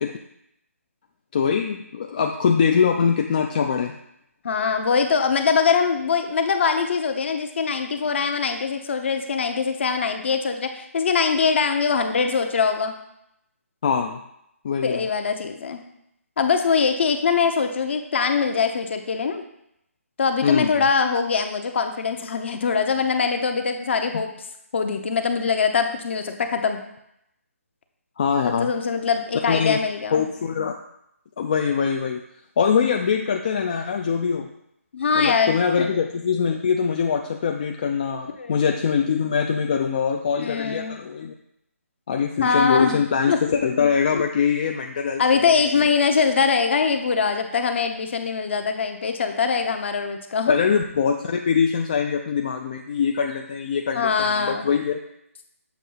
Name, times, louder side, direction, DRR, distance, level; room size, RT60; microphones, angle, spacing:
voice 1, 1.3-4.0 13.8-14.2 14.6-15.1 20.4-20.8 28.2-28.7 29.5-29.8 30.1-30.8 31.4-32.2 32.6-34.5 35.2-41.3 42.1-45.5 45.7-45.8 50.5-55.0, left 6 dB, 35° left, 3 dB, 0.3 m, -23 dB
voice 2, 4.4-12.9 14.8-15.8 16.4-19.4 20.2-24.3 24.7-26.8 28.6-30.2 34.9-35.9 38.4-38.6 40.4-41.0 42.4-43.4 45.2-50.5 53.9-54.7, left 5 dB, 50° left, 6 dB, 0.8 m, -22 dB
7.2 x 2.8 x 5.5 m, 0.78 s
hypercardioid pair, 160°, 8 cm